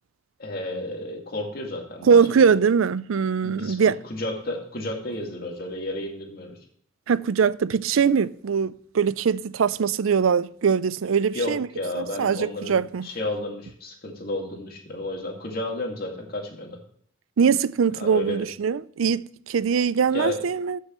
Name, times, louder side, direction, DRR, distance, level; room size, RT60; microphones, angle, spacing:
voice 1, 0.4-2.5 3.4-3.8 4.0-6.6 11.3-16.8 17.9-18.5 20.1-20.4, left 1 dB, 45° left, 2.2 m, -32 dB
voice 2, 2.0-4.0 7.1-11.7 12.0-13.1 17.4-20.8, right 6 dB, 85° right, 0.4 m, -22 dB
13.0 x 6.4 x 3.1 m
head